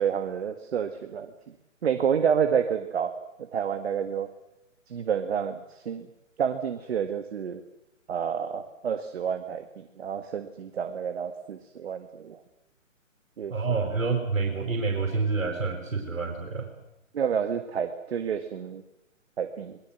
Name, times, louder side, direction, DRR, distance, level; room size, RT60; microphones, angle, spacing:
voice 1, 0.0-1.3 1.8-3.1 3.4-4.3 4.9-6.1 6.4-7.6 8.1-12.4 13.4-13.8 17.1-18.8 19.4-19.8, right 7 dB, 50° right, 8 dB, 1.9 m, -29 dB
voice 2, 13.5-16.7, right 4 dB, 80° right, 3 dB, 5.5 m, -28 dB
23.5 x 21.0 x 7.7 m, 0.89 s
figure-of-eight pair, 145°, 39 cm